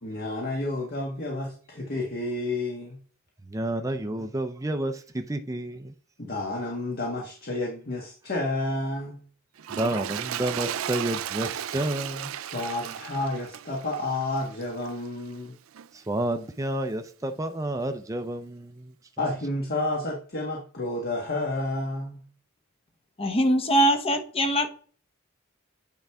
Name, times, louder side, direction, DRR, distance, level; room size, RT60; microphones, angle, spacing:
voice 1, 0.0-3.0 6.2-9.2 12.4-15.5 19.2-22.2, left 2 dB, 50° left, 1.4 m, -30 dB
voice 2, 3.4-5.9 9.7-12.3 15.9-18.9, right 1 dB, 15° right, 0.5 m, -30 dB
Toilet flush, 9.6-15.1 15.7-15.9, right 10 dB, 80° right, 0.4 m, -35 dB
voice 3, 23.2-24.7, right 1 dB, 30° left, 0.9 m, -22 dB
9.0 x 4.6 x 3.5 m
head